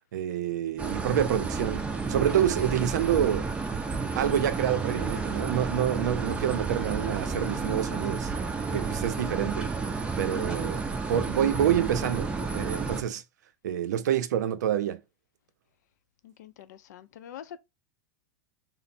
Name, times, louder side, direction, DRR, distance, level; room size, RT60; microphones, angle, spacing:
voice 1, 0.1-3.5 4.1-8.3 8.6-13.2 13.6-15.0, right 10 dB, 85° right, 0.5 m, -28 dB
sound 1, 0.8-13.0, right 4 dB, 10° right, 0.5 m, -31 dB
voice 2, 16.2-17.6, left 10 dB, 80° left, 0.5 m, -45 dB
3.3 x 2.0 x 4.1 m
supercardioid pair, 130°, 9 cm